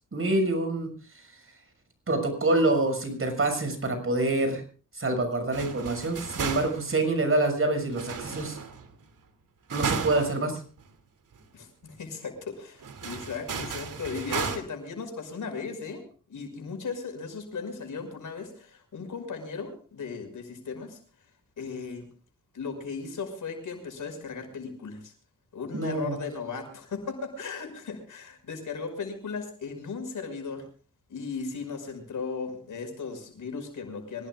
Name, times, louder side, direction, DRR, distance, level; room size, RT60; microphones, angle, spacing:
voice 1, 0.1-0.9 2.1-4.6 4.9-8.6 9.7-10.6 25.7-26.2, right 2 dB, 45° right, 6 dB, 6.6 m, -26 dB
sound 1, 5.5-7.0 7.9-9.0 9.7-10.4 10.8-10.9 11.3-11.4 12.8-14.6, right 6 dB, 80° right, 2.6 m, -34 dB
voice 2, 11.5-16.0 16.3-21.0 21.6-22.1 22.5-25.1 25.5-30.7 31.1-34.3, left 5 dB, 80° left, 5 dB, 5.8 m, -36 dB
25.5 x 17.5 x 2.5 m, 0.39 s
cardioid pair, 85°, 31 cm